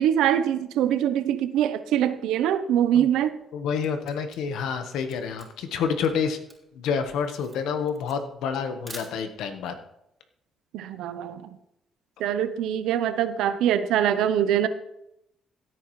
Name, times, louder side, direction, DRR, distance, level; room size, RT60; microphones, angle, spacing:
voice 1, 0.0-3.4 10.7-11.6 12.2-14.7, right 10 dB, 90° right, 12 dB, 0.8 m, -23 dB
Camera, 3.4-9.6, right 2 dB, 15° right, 3.8 m, -48 dB
voice 2, 3.5-6.4 6.7-9.7, left 6 dB, 85° left, 8 dB, 1.3 m, -28 dB
16.0 x 9.3 x 3.2 m, 0.83 s
cardioid pair, 90°, 0 cm